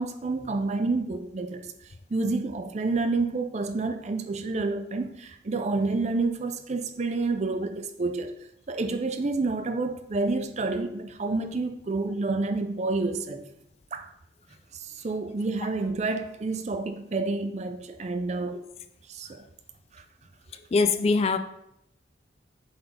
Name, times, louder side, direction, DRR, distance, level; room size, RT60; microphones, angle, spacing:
voice 1, 0.0-1.7 2.1-8.3 8.7-13.4 13.9-14.1 14.8-18.6 19.1-19.4, right 3 dB, 40° right, 8 dB, 0.5 m, -29 dB
voice 2, 20.7-21.4, left 4 dB, 35° left, 9 dB, 0.3 m, -22 dB
7.9 x 4.0 x 3.3 m, 0.77 s
head